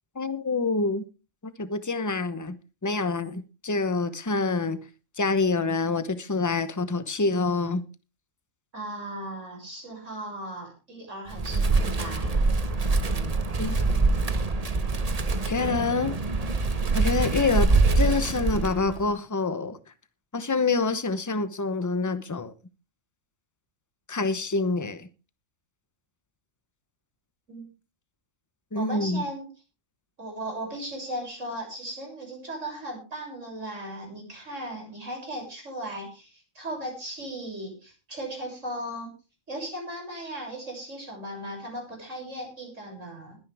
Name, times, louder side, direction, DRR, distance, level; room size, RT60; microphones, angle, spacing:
voice 1, 0.1-1.0 1.6-4.8 5.2-7.8 13.6-13.8 15.4-16.2 16.9-19.8 20.3-22.5 24.1-25.1 28.7-29.2, left 3 dB, 15° left, 0.8 m, -26 dB
voice 2, 8.7-12.5 27.5-27.7 28.7-29.5 30.2-39.1 39.5-43.4, right 1 dB, 60° right, 7.4 m, -37 dB
Wind, 11.3-19.1, right 3 dB, 30° right, 1.0 m, -24 dB
21.0 x 9.9 x 3.5 m
omnidirectional pair, 1.4 m